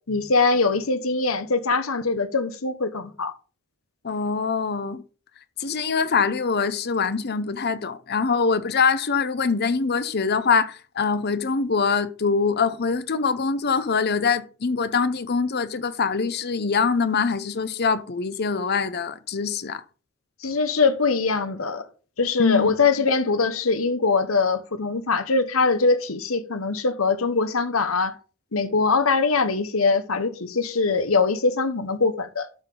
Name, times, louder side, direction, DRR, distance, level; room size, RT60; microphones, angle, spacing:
voice 1, 0.1-3.3 20.4-21.9 22.2-28.1 28.5-32.5, left 4 dB, 75° left, 1.2 m, -22 dB
voice 2, 4.0-5.0 5.6-19.8 22.4-22.7, left 5 dB, 50° left, 0.8 m, -24 dB
12.5 x 5.9 x 3.9 m
head